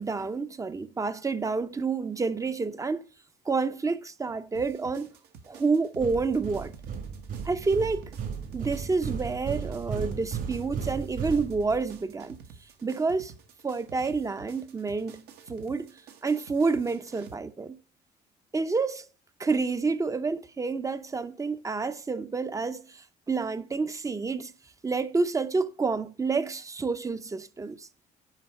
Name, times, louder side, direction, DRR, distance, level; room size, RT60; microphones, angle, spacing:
voice 1, 0.0-3.1 3.5-5.1 5.5-6.7 7.4-8.1 8.5-12.4 12.8-13.3 13.6-15.9 16.2-17.8 18.5-19.0 19.4-24.5 24.8-27.9, right 4 dB, 20° right, 0.5 m, -29 dB
sound 1, 4.5-17.3, right 6 dB, 75° right, 1.2 m, -50 dB
sound 2, 6.0-12.0, right 6 dB, 60° right, 2.8 m, -36 dB
9.8 x 5.0 x 5.3 m
cardioid pair, 110°, 17 cm